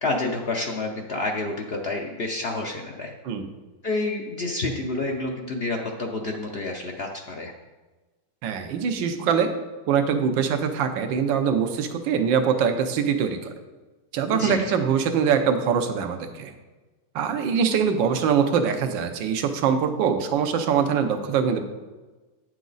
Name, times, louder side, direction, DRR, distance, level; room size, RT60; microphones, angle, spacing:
voice 1, 0.0-3.1 3.8-7.5 14.3-14.7, left 2 dB, 85° left, 0 dB, 0.5 m, -29 dB
voice 2, 8.4-9.5 9.9-13.5 14.1-16.5 17.1-21.6, right 7 dB, 85° right, 7 dB, 1.4 m, -23 dB
9.2 x 6.1 x 3.9 m, 1.2 s
omnidirectional pair, 2.0 m